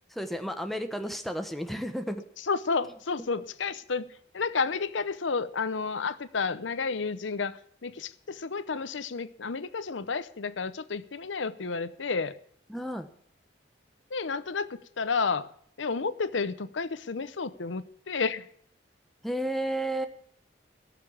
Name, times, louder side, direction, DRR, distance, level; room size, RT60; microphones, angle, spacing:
voice 1, 0.1-2.2 12.7-13.1 19.2-20.1, right 1 dB, ahead, 6 dB, 1.1 m, -32 dB
voice 2, 2.5-12.3 14.1-14.7 15.0-15.5 15.8-18.5, left 4 dB, 85° left, 15 dB, 0.8 m, -31 dB
17.5 x 6.8 x 7.2 m, 0.64 s
head